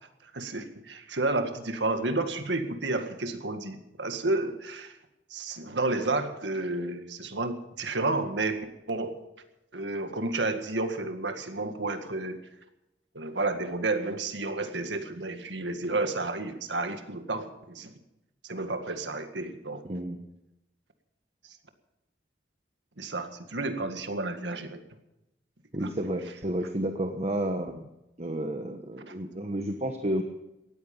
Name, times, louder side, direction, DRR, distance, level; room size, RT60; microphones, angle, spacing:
voice 1, 0.2-4.9 5.3-9.1 9.7-12.4 13.1-18.0 18.4-19.8 21.4-21.6 23.0-24.8 25.8-25.9 29.1-29.2, right 2 dB, 80° right, 7 dB, 2.0 m, -31 dB
voice 2, 19.8-20.2 25.7-27.9 28.2-30.2, right 1 dB, 40° right, 5 dB, 1.2 m, -31 dB
18.5 x 14.0 x 5.5 m, 0.91 s
head